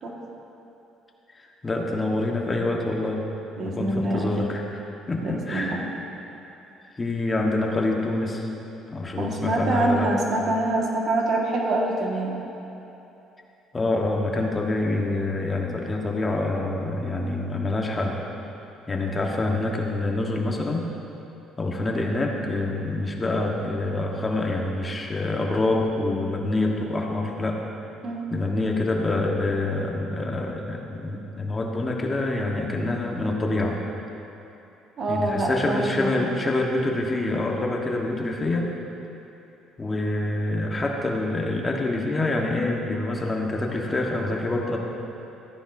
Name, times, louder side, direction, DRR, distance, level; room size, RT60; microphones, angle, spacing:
voice 1, 1.3-3.3 3.6-4.6 5.1-5.8 7.0-8.5 8.9-10.1 13.7-18.2 18.9-20.9 21.6-27.6 28.3-33.8 35.1-38.7 39.8-44.8, left 2 dB, 20° left, 0 dB, 1.3 m, -26 dB
voice 2, 3.6-4.5 5.2-5.8 9.2-12.4 28.0-28.2 35.0-36.1, right 2 dB, 50° right, -1 dB, 1.7 m, -25 dB
14.5 x 9.8 x 2.7 m, 2.9 s
cardioid pair, 110°, 0 cm